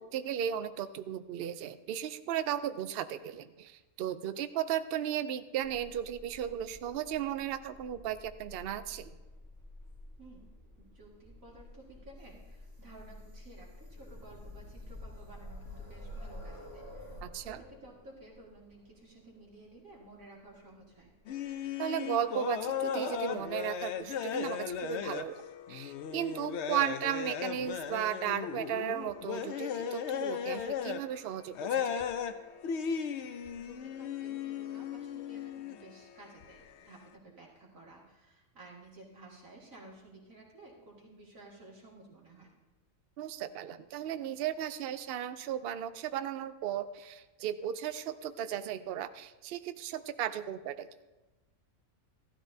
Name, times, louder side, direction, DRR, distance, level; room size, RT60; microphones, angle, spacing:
voice 1, 0.0-9.2 17.2-17.6 21.8-25.4 25.7-32.0 43.2-50.9, right 10 dB, 60° right, 12 dB, 0.7 m, -35 dB
sound 1, 5.6-17.2, left 1 dB, 45° right, 4.2 m, -53 dB
voice 2, 10.2-10.5 10.9-17.2 17.4-21.1 33.2-42.5, right 2 dB, 85° right, -4 dB, 2.7 m, -54 dB
sound 2, 13.7-21.5 22.6-22.7 23.1-23.2, left 1 dB, 20° left, 2.8 m, -48 dB
sound 3, 21.3-31.2 31.5-32.4 32.6-35.9 36.2-36.4, left 8 dB, 65° left, 0.8 m, -36 dB
15.0 x 12.5 x 2.7 m, 1.1 s
omnidirectional pair, 1.4 m